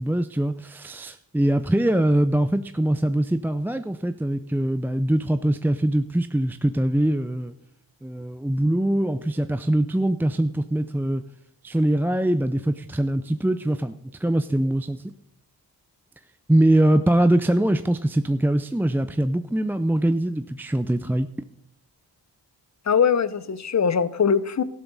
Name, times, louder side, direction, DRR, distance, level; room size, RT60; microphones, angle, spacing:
voice 1, 0.0-7.5 8.0-11.2 11.6-15.0 16.5-21.3, right 1 dB, 5° right, 0.5 m, -23 dB
voice 2, 22.9-24.6, left 7 dB, 40° left, 0.8 m, -21 dB
13.0 x 12.0 x 4.1 m
cardioid pair, 55°, 42 cm